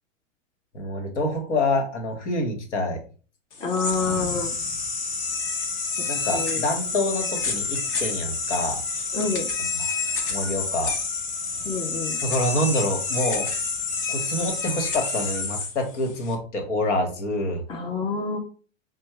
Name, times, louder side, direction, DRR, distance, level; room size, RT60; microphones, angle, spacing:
voice 1, 0.7-3.0 6.1-8.8 9.8-9.9 10.3-10.9 12.2-13.5 14.1-17.6, left 1 dB, 65° left, 3 dB, 1.3 m, -26 dB
sound 1, 3.5-16.4, left 4 dB, 30° left, 0.9 m, -28 dB
voice 2, 3.6-4.5 6.3-6.6 9.1-9.5 11.7-12.1 17.7-18.4, left 4 dB, 15° left, 3 dB, 0.5 m, -27 dB
5.4 x 2.2 x 3.1 m, 0.39 s
figure-of-eight pair, 100°, 38 cm